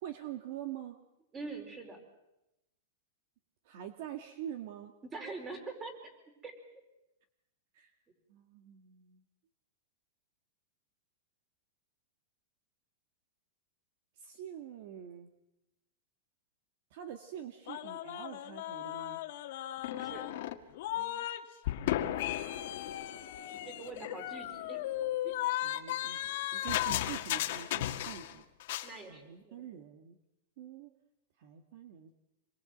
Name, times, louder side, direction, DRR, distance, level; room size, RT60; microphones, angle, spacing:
voice 1, 0.0-1.0 3.7-4.9 7.7-7.9 8.3-9.2 14.2-15.3 16.9-19.2 20.9-21.3 25.6-26.2 26.5-28.4 29.1-30.2 30.6-30.9 31.4-32.2, right 10 dB, 50° right, 7 dB, 1.8 m, -45 dB
voice 2, 1.3-2.0 5.1-5.9 6.4-6.6 19.8-20.3 23.5-24.8 25.2-25.3 28.8-29.8, right 3 dB, 15° right, 5 dB, 4.7 m, -44 dB
sound 1, 17.7-21.4 21.6-28.3 28.6-28.9, left 13 dB, 55° left, 2.0 m, -35 dB
27.0 x 22.5 x 8.0 m, 0.92 s
supercardioid pair, 165°, 0 cm